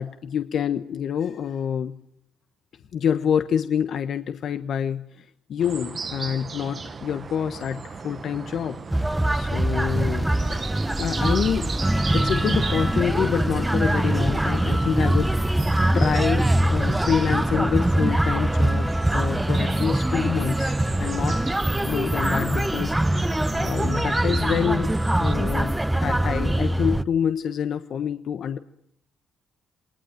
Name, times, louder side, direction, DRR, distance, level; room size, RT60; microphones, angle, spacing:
voice 1, 0.0-1.9 2.9-8.8 9.3-10.6 11.0-11.7 12.1-20.7 21.0-21.4 21.8-24.9 25.2-28.6, left 8 dB, 65° left, 8 dB, 1.3 m, -27 dB
sound 1, 5.6-25.3, right 5 dB, 40° right, 1.1 m, -37 dB
sound 2, 8.9-27.0, right 1 dB, 10° right, 1.0 m, -23 dB
28.5 x 19.5 x 9.2 m, 0.75 s
cardioid pair, 90°, 0 cm